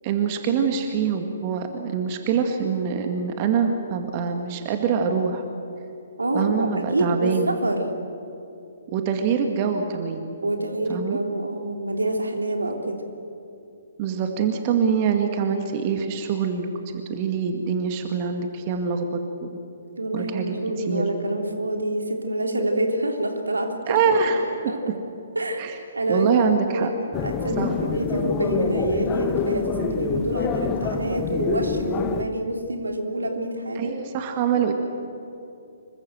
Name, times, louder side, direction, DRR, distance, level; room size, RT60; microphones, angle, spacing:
voice 1, 0.0-5.4 6.3-7.6 8.9-10.4 10.9-11.2 14.0-19.6 20.1-20.5 20.9-21.1 23.9-24.7 25.6-25.7 26.1-26.9 27.6-27.7 33.7-34.7, right 6 dB, 35° right, 5 dB, 2.1 m, -24 dB
voice 2, 6.2-7.8 10.4-13.0 20.0-24.4 24.7-24.8 25.3-25.6 26.0-33.9, right 1 dB, 80° right, 3 dB, 3.5 m, -27 dB
sound 1, 27.1-32.2, left 6 dB, 20° left, 1.3 m, -27 dB
26.5 x 23.0 x 7.9 m, 2.8 s
figure-of-eight pair, 130°, 0 cm